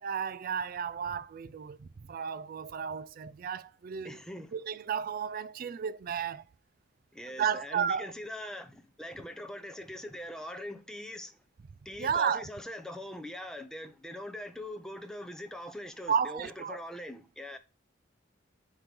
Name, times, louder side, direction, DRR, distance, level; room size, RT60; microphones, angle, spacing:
voice 1, 0.0-4.2 4.5-6.4 7.4-8.1 12.0-12.4 16.1-16.8, right 7 dB, 50° right, 0.4 m, -33 dB
voice 2, 4.0-4.5 7.1-11.4 11.8-17.6, left 1 dB, 5° left, 0.8 m, -42 dB
7.8 x 3.1 x 5.2 m
head